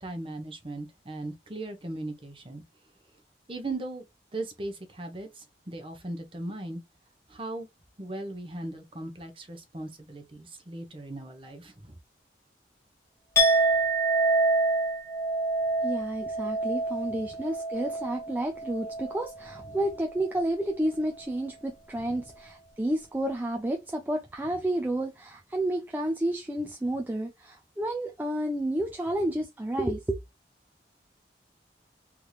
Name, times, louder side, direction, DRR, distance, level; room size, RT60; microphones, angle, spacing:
voice 1, 0.0-2.6 3.5-4.0 4.3-6.8 7.3-7.7 8.0-12.0 17.3-17.4 19.7-19.8 22.1-22.2, right 2 dB, 30° right, 0.9 m, -38 dB
Chink clink, 13.3-19.3 19.6-20.0, right 2 dB, 15° left, 1.2 m, -27 dB
voice 2, 15.8-30.2, right 1 dB, 10° right, 0.3 m, -30 dB
3.6 x 3.1 x 2.3 m
head